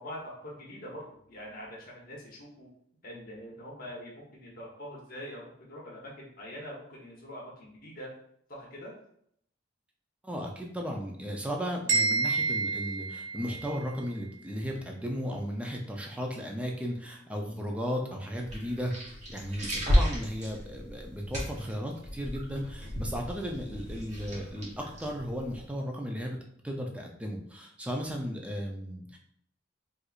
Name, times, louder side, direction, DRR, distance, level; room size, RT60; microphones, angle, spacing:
voice 1, 0.0-2.7 3.0-8.1 8.5-8.9, equal, 50° left, -3 dB, 1.0 m, -44 dB
voice 2, 10.2-18.9 19.3-26.4 26.6-29.2, equal, 5° right, 1 dB, 0.4 m, -35 dB
sound 1, 11.9-13.9, right 4 dB, 70° right, 1.0 m, -29 dB
sound 2, 18.4-25.7, equal, 35° right, 1.1 m, -33 dB
4.4 x 2.5 x 2.4 m, 0.70 s
head